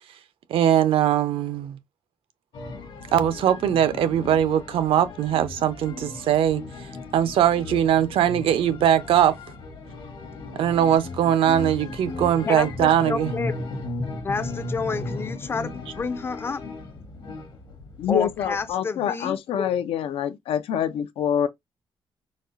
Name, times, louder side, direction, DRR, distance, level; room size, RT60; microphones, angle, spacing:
voice 1, 0.5-1.8 3.1-6.6 7.1-9.3 10.5-13.3, right 10 dB, 70° right, 0.6 m, -21 dB
sound 1, 2.5-18.7, left 3 dB, 55° left, 1.0 m, -36 dB
voice 2, 12.5-13.5 14.2-16.6 18.1-19.7, left 4 dB, 25° left, 0.4 m, -29 dB
voice 3, 18.0-21.5, left 9 dB, 85° left, 0.5 m, -26 dB
4.1 x 2.3 x 2.5 m
cardioid pair, 165°, 9 cm